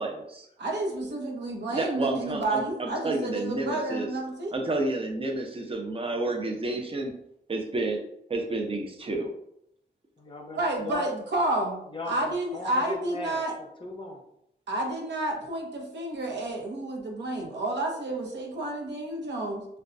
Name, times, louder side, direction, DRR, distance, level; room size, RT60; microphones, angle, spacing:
voice 1, 0.0-0.5 1.7-4.1 4.5-7.2 7.5-8.0 8.3-9.3, right 2 dB, 30° right, 3 dB, 0.6 m, -30 dB
voice 2, 0.6-4.5 10.5-11.8 12.1-13.5 14.7-19.7, right 2 dB, 80° right, 0 dB, 0.8 m, -30 dB
voice 3, 10.2-11.0 11.9-14.2, left 2 dB, 30° left, 1 dB, 0.6 m, -38 dB
4.3 x 2.2 x 2.5 m, 0.75 s
wide cardioid pair, 115°, 18 cm